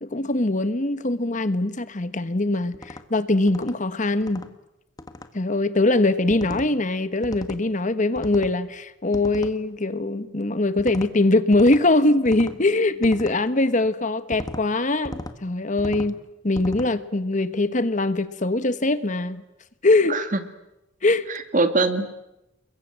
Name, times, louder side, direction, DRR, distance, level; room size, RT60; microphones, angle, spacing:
voice 1, 0.0-4.5 5.3-16.1 16.4-19.4 19.8-20.2 21.0-21.2, left 2 dB, 40° left, 1.2 m, -22 dB
sound 1, 2.7-3.0 3.5-3.7 4.2-4.5 5.0-5.3 6.3-6.7 7.2-7.6 8.1-8.6 9.1-9.5 10.8-11.1 11.5-11.8 12.2-12.6 13.0-13.4 14.3-14.6 15.0-15.4 15.8-16.1 16.5-16.9, left 1 dB, 20° left, 1.5 m, -37 dB
voice 2, 20.1-20.4 21.3-22.2, right 3 dB, 40° right, 2.1 m, -23 dB
30.0 x 22.0 x 8.9 m
head